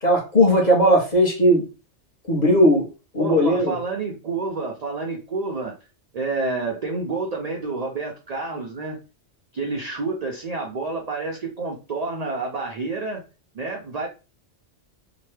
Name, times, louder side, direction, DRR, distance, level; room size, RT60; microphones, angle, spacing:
voice 1, 0.0-1.6 2.3-2.9 3.1-3.8, equal, 40° left, -1 dB, 1.0 m, -17 dB
voice 2, 3.2-5.7 6.1-9.0 9.5-13.2 13.5-14.1, right 3 dB, 55° right, 1 dB, 0.4 m, -29 dB
2.9 x 2.2 x 3.1 m, 0.31 s
omnidirectional pair, 1.2 m